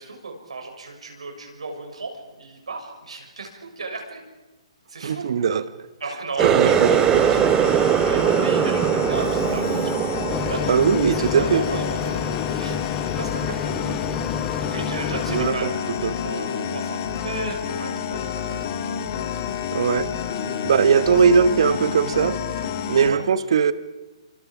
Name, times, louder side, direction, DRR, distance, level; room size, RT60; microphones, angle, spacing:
voice 1, 0.0-2.1 2.4-4.2 4.9-5.3 6.0-10.0 10.5-10.7 11.3-12.8 13.0-13.9 14.7-18.7 23.1-23.2, right 3 dB, 75° right, 2 dB, 6.7 m, -34 dB
voice 2, 5.0-5.6 6.4-7.2 10.7-11.6 15.3-15.7 16.0-16.2 19.7-20.1 20.6-22.3 22.9-23.7, right 6 dB, 60° right, 13 dB, 1.4 m, -19 dB
Water tap faucet, 6.4-11.9 12.3-12.7 13.2-13.5 14.2-14.3, right 10 dB, 20° right, 0.8 m, -21 dB
sound 1, 6.7-23.1, left 7 dB, 40° left, 2.7 m, -29 dB
sound 2, 10.3-15.5, left 7 dB, 15° left, 1.4 m, -30 dB
29.5 x 26.5 x 5.0 m, 1.1 s
figure-of-eight pair, 135°, 3 cm